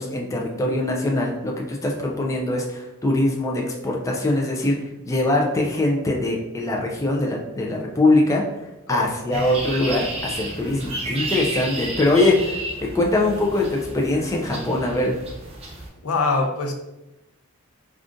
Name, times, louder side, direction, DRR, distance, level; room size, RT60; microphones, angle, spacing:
voice 1, 0.0-4.8 5.0-8.4 8.9-15.2, left 2 dB, 15° left, -1 dB, 0.3 m, -22 dB
voice 2, 8.9-9.4 16.0-16.7, left 3 dB, 80° left, 3 dB, 0.5 m, -24 dB
sound 1, 9.3-15.9, right 2 dB, 30° right, 0.6 m, -32 dB
3.6 x 2.4 x 2.5 m, 0.94 s
head